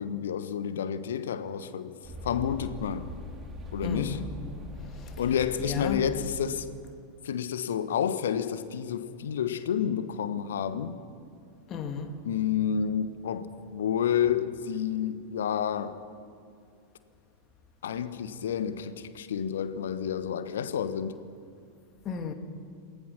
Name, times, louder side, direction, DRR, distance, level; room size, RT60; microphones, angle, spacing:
voice 1, 0.0-1.9 2.2-3.1 3.7-4.2 5.2-6.7 7.2-11.0 12.2-16.0 17.8-21.2, left 8 dB, 60° left, 1.3 m, -30 dB
sound 1, 2.0-6.9, left 1 dB, 20° right, 3.4 m, -41 dB
voice 2, 3.8-4.3 4.9-5.2 5.6-6.0 11.7-12.2 22.0-22.3, left 6 dB, 30° left, 2.3 m, -34 dB
27.5 x 19.5 x 6.0 m
figure-of-eight pair, 90°, 0 cm